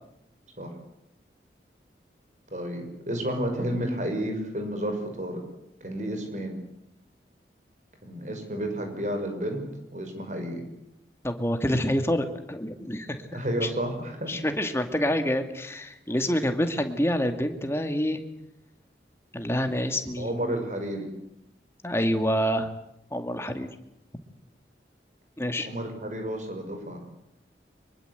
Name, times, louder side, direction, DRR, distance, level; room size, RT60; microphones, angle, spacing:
voice 1, 2.5-5.4 5.8-6.6 8.0-9.6 9.9-10.6 13.3-14.3 20.2-21.1 25.6-27.0, right 1 dB, 45° right, 5 dB, 6.2 m, -31 dB
voice 2, 11.2-13.2 13.6-13.7 14.3-18.2 19.3-20.3 21.8-22.7 23.1-23.7 25.4-25.7, equal, 15° left, 7 dB, 2.3 m, -27 dB
24.5 x 23.0 x 8.2 m, 0.81 s
head